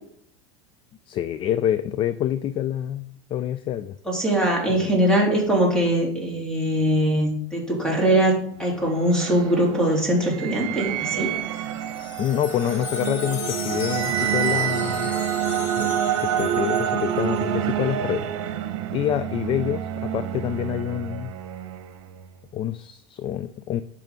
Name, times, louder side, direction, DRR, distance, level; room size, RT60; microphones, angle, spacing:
voice 1, 1.1-4.0 4.8-4.9 12.2-15.1 15.8-18.3 18.9-21.3 22.5-23.8, left 11 dB, 35° left, 13 dB, 0.4 m, -27 dB
voice 2, 4.0-11.3, right 1 dB, 5° left, -2 dB, 3.3 m, -22 dB
sound 1, 8.5-22.3, right 9 dB, 75° right, 1.0 m, -28 dB
Wind chime, 11.3-17.5, left 7 dB, 60° left, 1.5 m, -38 dB
10.5 x 6.0 x 3.7 m, 0.66 s
supercardioid pair, 130°, 16 cm